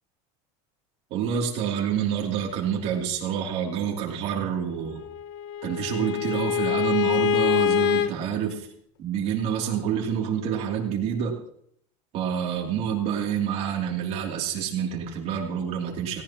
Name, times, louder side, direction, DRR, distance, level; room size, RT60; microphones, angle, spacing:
voice 1, 1.1-5.0 5.6-8.7 9.0-11.3 12.1-16.2, right 8 dB, 40° right, 0 dB, 2.9 m, -27 dB
Bowed string instrument, 5.0-8.1, left 10 dB, 65° left, 1.1 m, -25 dB
17.5 x 17.5 x 3.0 m, 0.67 s
cardioid pair, 175°, 16 cm